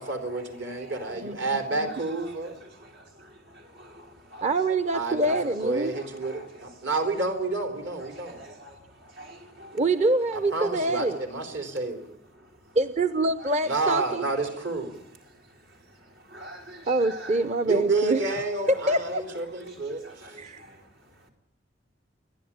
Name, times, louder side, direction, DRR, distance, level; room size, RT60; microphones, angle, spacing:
voice 1, 0.0-2.6 4.9-8.4 10.3-12.0 13.6-15.0 17.6-20.4, right 3 dB, 70° right, 4 dB, 3.9 m, -30 dB
voice 2, 2.9-4.4 5.3-5.4 5.9-6.0 6.3-6.4 8.3-8.8 9.2-9.8 16.3-17.4 20.0-20.8, equal, 85° right, 1 dB, 4.4 m, -44 dB
voice 3, 4.4-5.9 9.7-11.2 12.8-14.2 16.9-18.2 18.9-19.2 20.4-20.6, right 2 dB, 35° right, 11 dB, 0.7 m, -25 dB
29.5 x 11.0 x 8.8 m, 0.76 s
head